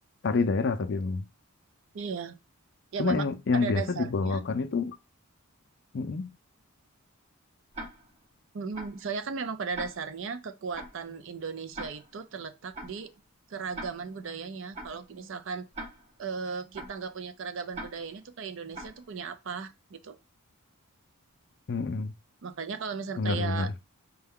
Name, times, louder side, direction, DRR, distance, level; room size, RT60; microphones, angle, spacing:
voice 1, 0.2-1.3 3.0-5.0 5.9-6.3 21.7-22.1 23.2-23.7, left 4 dB, 50° left, 0.4 m, -28 dB
voice 2, 1.9-2.4 2.9-3.2 3.5-4.4 8.5-13.1 13.5-15.6 16.2-20.2 22.4-23.7, right 5 dB, 55° right, 0.4 m, -36 dB
Tick-tock, 7.7-8.2 8.7-9.1 9.7-10.2 10.7-11.1 11.7-12.2 12.7-13.1 13.7-14.2 14.7-15.1 15.7-16.2 16.7-17.1 17.7-18.2 18.7-19.1, right 1 dB, 30° right, 0.9 m, -42 dB
5.5 x 2.2 x 3.5 m
head